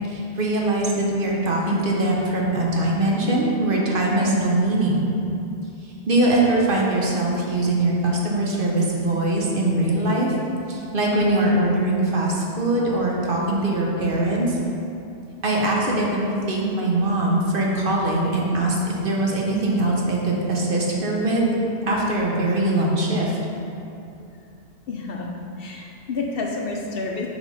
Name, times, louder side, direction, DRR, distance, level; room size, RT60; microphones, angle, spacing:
voice 1, 0.1-5.1 6.1-10.3 10.7-14.6 15.4-21.6 21.8-23.4, right 1 dB, 50° right, -3 dB, 1.0 m, -22 dB
voice 2, 24.9-25.3 25.6-27.3, left 3 dB, 60° left, 0 dB, 0.8 m, -29 dB
6.3 x 3.5 x 5.2 m, 2.7 s
omnidirectional pair, 1.2 m